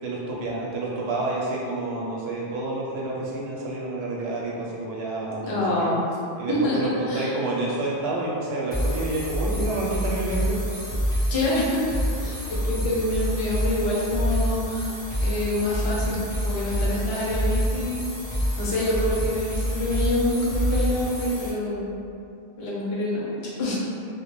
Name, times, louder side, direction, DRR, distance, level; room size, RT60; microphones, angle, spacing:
voice 1, 0.0-5.9 6.4-10.6, right 2 dB, 85° right, -4 dB, 0.8 m, -29 dB
voice 2, 5.4-6.0 6.5-6.8 7.1-7.3 11.3-11.9 12.2-14.9 15.2-18.0 18.6-21.9 22.6-23.3 23.6-23.7, left 1 dB, 80° left, -7 dB, 0.9 m, -26 dB
sound 1, 8.7-21.5, equal, 35° left, 0.8 m, -27 dB
2.2 x 2.1 x 3.0 m, 2.5 s
omnidirectional pair, 1.0 m